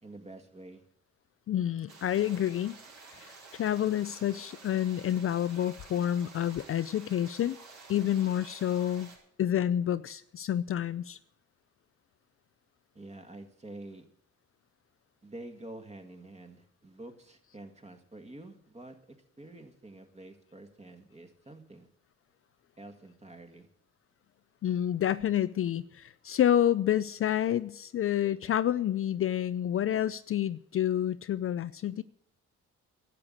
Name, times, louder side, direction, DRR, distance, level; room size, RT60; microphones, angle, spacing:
voice 1, 0.0-0.8 12.9-14.1 15.2-21.9 22.8-23.7, right 2 dB, 20° right, 5 dB, 1.9 m, -48 dB
voice 2, 1.5-2.8 3.1-7.6 7.9-9.1 9.4-11.2 24.6-32.0, left 11 dB, 45° left, 14 dB, 0.5 m, -29 dB
sound 1, 1.9-9.2, right 4 dB, 65° right, 4.5 m, -51 dB
12.0 x 8.1 x 8.7 m, 0.67 s
cardioid pair, 90°, 30 cm